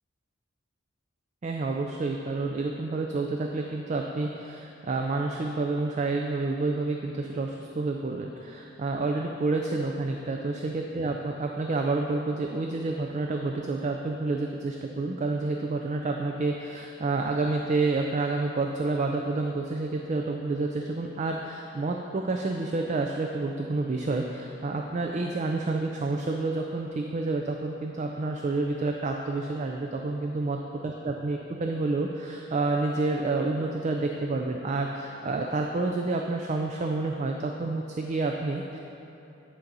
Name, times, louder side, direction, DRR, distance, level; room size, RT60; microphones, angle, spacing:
voice 1, 1.4-38.8, right 3 dB, 35° right, 2 dB, 0.3 m, -29 dB
9.6 x 3.8 x 5.4 m, 2.8 s
head